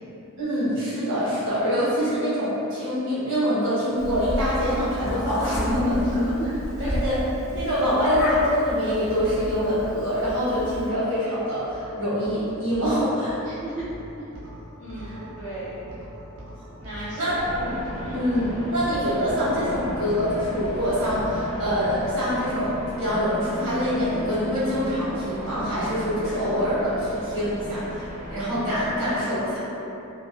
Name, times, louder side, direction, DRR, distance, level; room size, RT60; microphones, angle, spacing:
voice 1, 0.4-6.4 6.8-7.2 7.5-13.4 15.0-15.1 17.0-17.7 18.1-29.6, equal, 60° right, -11 dB, 1.1 m, -25 dB
Meow, 4.0-10.9, left 1 dB, 65° left, 0.4 m, -30 dB
sound 1, 11.5-22.0, equal, 80° right, 0.7 m, -41 dB
voice 2, 13.4-13.8 14.2-14.3 14.8-15.8 16.8-17.6 18.0-18.2, right 2 dB, 35° right, -14 dB, 0.5 m, -36 dB
sound 2, 17.4-29.0, equal, 5° right, 1.2 m, -36 dB
2.5 x 2.1 x 2.5 m, 2.9 s
head